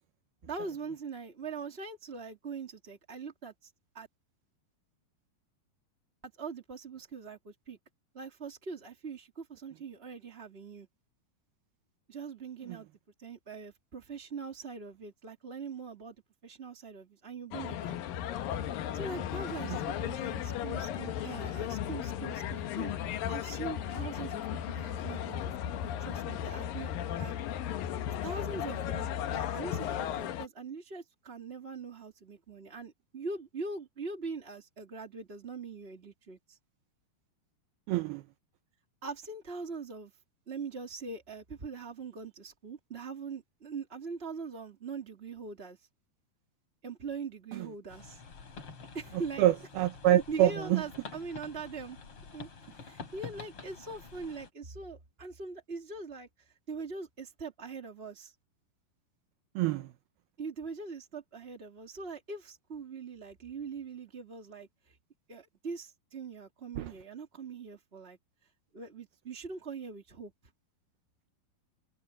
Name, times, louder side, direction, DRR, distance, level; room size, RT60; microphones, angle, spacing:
voice 1, 0.5-4.1 6.2-7.8 8.1-10.9 12.1-12.9 13.2-16.1 16.4-18.0 18.9-25.5 25.8-27.3 28.2-36.6 39.0-40.1 40.5-45.9 46.8-48.2 48.9-49.4 50.1-52.0 52.3-58.3 60.4-65.0 65.3-68.2 68.7-70.3, right 4 dB, 25° right, 1.3 m, -42 dB
sound 1, 17.5-30.5, left 10 dB, 65° left, 2.7 m, -35 dB
voice 2, 37.9-38.2 47.5-47.7 49.4-50.8 59.6-59.9 66.8-66.9, right 14 dB, 75° right, 2.6 m, -26 dB
sound 2, 47.9-54.5, left 4 dB, 35° left, 3.6 m, -48 dB
omnidirectional pair, 4.7 m